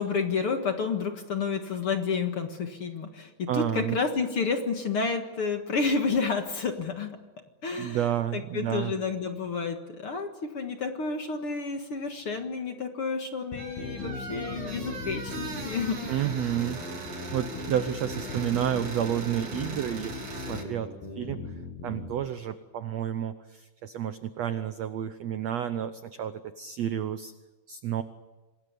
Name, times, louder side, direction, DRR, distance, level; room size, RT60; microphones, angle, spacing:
voice 1, 0.0-7.2 7.6-16.2, left 4 dB, 50° left, 5 dB, 2.0 m, -30 dB
voice 2, 3.5-4.0 7.8-8.9 16.1-16.8 17.3-20.9 21.2-21.4 21.8-27.3 27.7-28.0, right 10 dB, 75° right, 11 dB, 1.5 m, -30 dB
sound 1, 13.5-22.2, left 3 dB, 90° left, 8.4 m, -38 dB
sound 2, 13.6-20.6, right 3 dB, 55° right, 5.1 m, -40 dB
27.0 x 21.0 x 8.4 m, 1.2 s
omnidirectional pair, 4.2 m